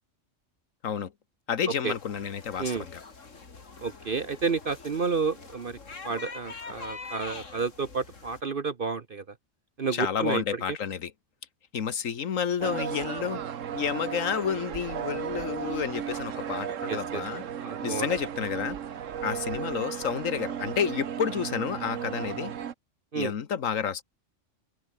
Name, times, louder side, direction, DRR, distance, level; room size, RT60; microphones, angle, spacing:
voice 1, 1.5-3.0 6.8-6.9 9.9-11.1 11.7-13.4 13.7-17.4 17.8-18.8 19.2-22.5 23.1-24.0, left 7 dB, 90° left, 1.6 m, -30 dB
sound 1, 1.9-8.4, left 4 dB, 75° left, 2.9 m, -44 dB
voice 2, 3.8-5.8 6.0-9.2 9.8-10.6 16.9-17.2 17.6-18.1 23.1-23.3, right 5 dB, 45° right, 1.2 m, -30 dB
sound 2, 12.6-22.7, right 8 dB, 75° right, 1.4 m, -35 dB
omnidirectional pair, 1.3 m